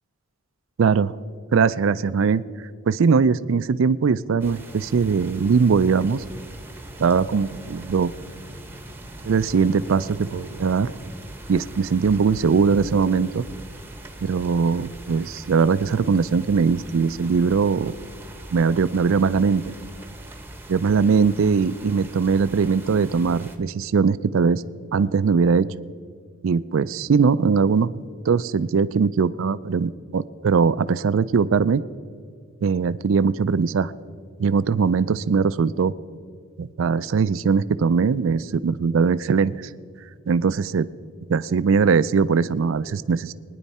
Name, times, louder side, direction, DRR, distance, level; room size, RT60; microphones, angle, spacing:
voice 1, 0.8-1.1 1.5-2.4 2.9-6.2 7.0-8.1 9.2-10.9 11.5-13.4 14.2-18.0 18.5-19.6 20.7-24.6 24.9-25.7 26.4-31.8 32.6-33.9 34.4-35.9 36.6-39.5 40.3-40.9 41.3-43.3, right 5 dB, 65° right, 16 dB, 0.4 m, -20 dB
sound 1, 4.4-23.6, right 1 dB, 10° right, 0.8 m, -41 dB
21.5 x 10.0 x 4.2 m, 2.1 s
head